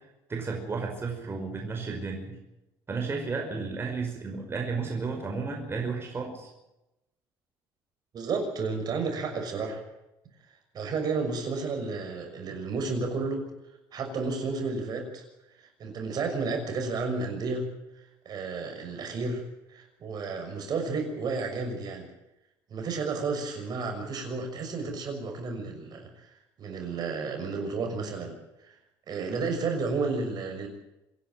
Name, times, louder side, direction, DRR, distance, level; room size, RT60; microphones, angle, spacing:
voice 1, 0.3-2.4 2.9-6.5, right 4 dB, 25° right, 1 dB, 5.4 m, -33 dB
voice 2, 8.1-9.8 10.7-13.5 13.9-15.2 15.5-17.7 18.2-19.4 19.7-22.1 22.7-28.4 28.6-28.8 29.1-30.7, right 4 dB, 50° right, 4 dB, 6.4 m, -32 dB
26.0 x 11.5 x 9.0 m, 0.92 s
cardioid pair, 105°, 9 cm